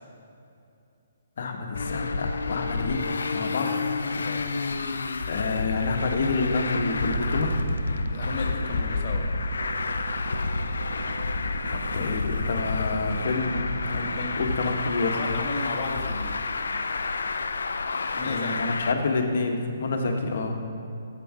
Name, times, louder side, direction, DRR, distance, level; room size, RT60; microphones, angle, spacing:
voice 1, 1.4-3.8 5.3-7.5 11.7-14.0 14.4-15.2 18.2-20.6, left 3 dB, 65° left, 3 dB, 1.2 m, -28 dB
Traffic noise roadway noise, 1.7-18.9, left 4 dB, 80° left, 0.5 m, -30 dB
sound 1, 7.1-14.9, right 4 dB, 70° right, 0.4 m, -36 dB
voice 2, 8.1-9.3 13.9-16.4 18.1-18.5, left 3 dB, 45° left, 1 dB, 1.3 m, -35 dB
7.8 x 6.9 x 6.2 m, 2.6 s
hypercardioid pair, 145°, 0 cm